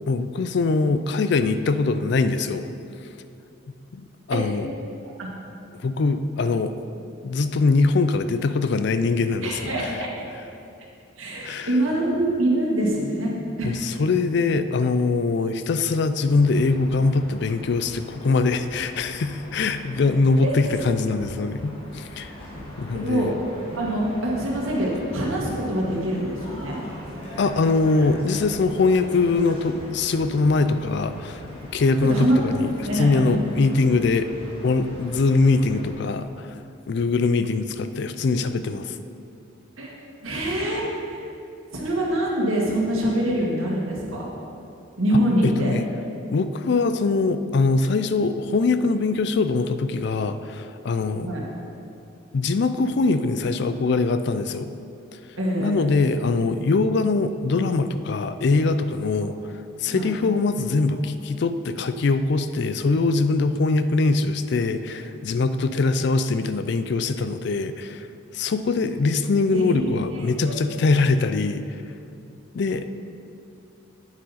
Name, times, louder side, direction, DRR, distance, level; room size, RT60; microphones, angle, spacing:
voice 1, 0.1-2.7 3.9-4.7 5.8-6.8 7.2-9.7 11.4-11.7 13.6-22.3 22.8-23.3 27.4-31.4 31.7-34.3 34.6-36.6 36.9-39.0 45.4-45.8 46.3-51.3 52.3-54.7 55.6-59.4 59.8-68.1 68.3-71.8 72.5-72.9, left 3 dB, 55° left, 11 dB, 0.4 m, -22 dB
voice 2, 9.4-10.2 11.2-13.7 20.4-20.6 22.9-23.3 23.8-26.8 32.0-32.4 32.9-33.4 39.8-39.9 40.2-40.8 41.1-41.3 41.7-44.3 45.0-45.7 51.2-51.5 55.4-55.8 60.0-60.1 69.5-70.5, right 1 dB, 90° right, -3 dB, 1.8 m, -25 dB
sound 1, 16.3-35.9, equal, 30° left, 1.7 m, -40 dB
8.8 x 7.6 x 4.2 m, 2.6 s
head